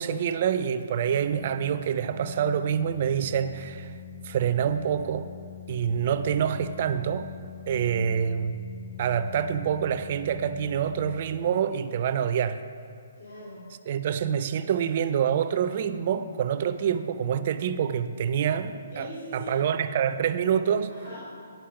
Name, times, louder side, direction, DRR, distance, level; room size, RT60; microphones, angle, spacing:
voice 1, 0.0-3.9 4.2-5.3 5.7-7.3 7.7-8.6 9.0-12.6 13.9-20.9, right 8 dB, 40° right, 11 dB, 0.4 m, -26 dB
Organ, 1.1-11.9, left 9 dB, 15° left, 0.6 m, -44 dB
voice 2, 7.6-8.2 13.2-13.6 16.8-16.9 18.9-19.6 20.9-21.2, equal, 85° left, -9 dB, 2.5 m, -41 dB
10.0 x 5.4 x 5.8 m, 2.4 s
hypercardioid pair, 170°, 0 cm